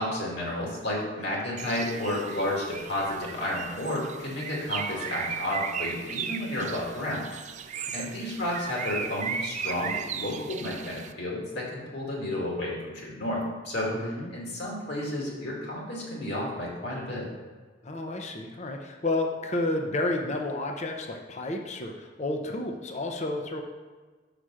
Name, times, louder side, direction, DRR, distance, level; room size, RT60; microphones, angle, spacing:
voice 1, 0.0-7.3 7.9-17.3, left 1 dB, 65° left, -4 dB, 2.2 m, -32 dB
Bird, 1.6-11.1, right 6 dB, 40° right, 0.4 m, -36 dB
voice 2, 13.9-14.3 17.8-23.6, left 2 dB, 40° left, 3 dB, 0.7 m, -31 dB
5.8 x 5.0 x 6.3 m, 1.3 s
head